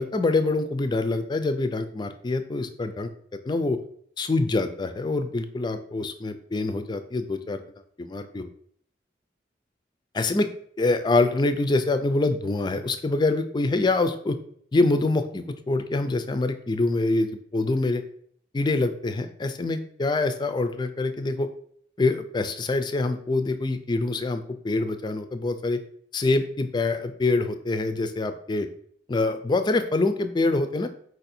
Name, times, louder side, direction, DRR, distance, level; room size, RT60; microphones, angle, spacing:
voice 1, 0.0-3.1 3.4-3.8 4.2-7.6 8.0-8.5 10.1-10.5 10.8-14.4 14.7-18.0 18.5-21.5 22.0-25.8 26.1-28.7 29.1-30.9, left 2 dB, 25° left, 9 dB, 0.4 m, -25 dB
4.6 x 2.6 x 4.2 m, 0.63 s
head